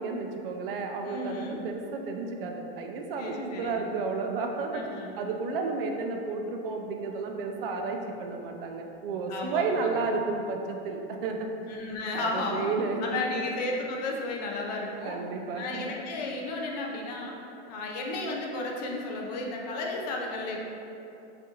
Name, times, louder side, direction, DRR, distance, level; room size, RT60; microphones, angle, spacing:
voice 1, 0.0-4.9 5.2-11.5 12.2-13.4 15.0-15.9, right 4 dB, 55° right, 3 dB, 0.5 m, -32 dB
voice 2, 1.0-1.6 3.2-3.9 4.7-5.1 9.3-10.0 11.7-12.7 13.0-15.2 15.6-17.3 17.7-20.6, left 2 dB, 40° left, -1 dB, 0.5 m, -33 dB
6.5 x 2.5 x 2.7 m, 2.7 s
supercardioid pair, 175°, 33 cm